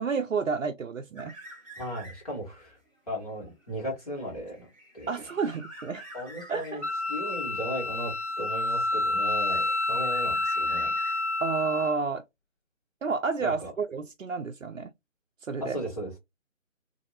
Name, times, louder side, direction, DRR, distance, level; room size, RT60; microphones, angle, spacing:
voice 1, 0.0-1.3 5.1-6.0 6.5-6.8 11.4-12.2 13.0-14.9 15.5-15.8, right 5 dB, 70° right, 0.5 m, -30 dB
sound 1, 1.2-2.4 2.9-7.1 8.1-8.9 9.2-11.6, right 1 dB, 10° right, 0.8 m, -48 dB
voice 2, 1.8-2.8 3.1-4.7 4.9-5.1 6.1-6.8 7.1-10.9 13.4-13.7 15.6-16.2, equal, 30° left, 1.5 m, -36 dB
Wind instrument woodwind instrument, 6.8-12.0, left 2 dB, 60° left, 0.8 m, -29 dB
2.8 x 2.6 x 2.6 m
figure-of-eight pair, 155°, 39 cm